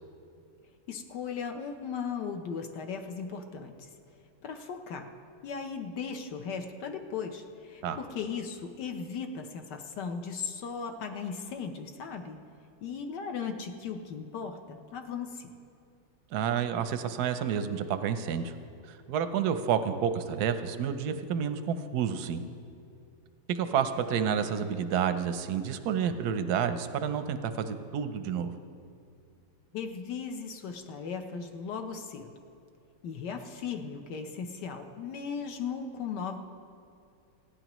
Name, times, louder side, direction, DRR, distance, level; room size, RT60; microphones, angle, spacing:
voice 1, 0.9-3.9 4.4-5.1 5.4-12.4 12.8-15.5 29.7-32.3 33.0-36.4, left 6 dB, 65° left, 5 dB, 1.3 m, -37 dB
voice 2, 16.3-18.5 18.9-22.4 23.5-28.5, right 8 dB, 70° right, 9 dB, 1.0 m, -30 dB
27.5 x 10.0 x 3.0 m, 2.5 s
omnidirectional pair, 2.3 m